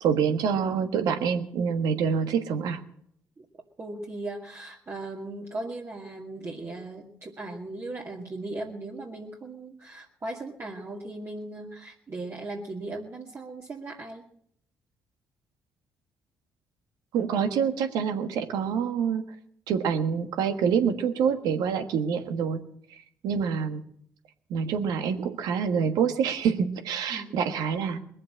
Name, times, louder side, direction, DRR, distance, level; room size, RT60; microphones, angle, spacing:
voice 1, 0.0-2.8 17.1-19.2 19.7-22.6 23.2-23.8 24.5-28.0, right 7 dB, 80° right, 7 dB, 1.4 m, -26 dB
voice 2, 3.8-14.2 27.1-27.5, right 2 dB, 40° right, -2 dB, 2.2 m, -38 dB
20.5 x 7.5 x 7.3 m, 0.69 s
supercardioid pair, 55°, 7 cm